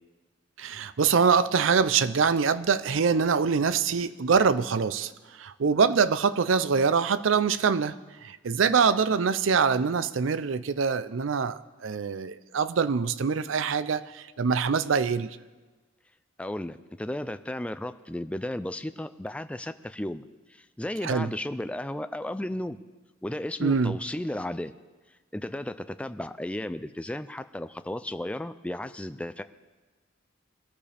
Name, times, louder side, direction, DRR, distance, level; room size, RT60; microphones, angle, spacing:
voice 1, 0.6-7.9 8.2-15.4 21.0-21.3 23.6-24.0, right 5 dB, 90° right, 14 dB, 0.5 m, -24 dB
voice 2, 16.4-20.2 20.5-22.8 23.2-24.7 25.3-29.4, left 1 dB, 5° left, 11 dB, 0.4 m, -34 dB
21.5 x 13.5 x 3.4 m, 1.3 s
head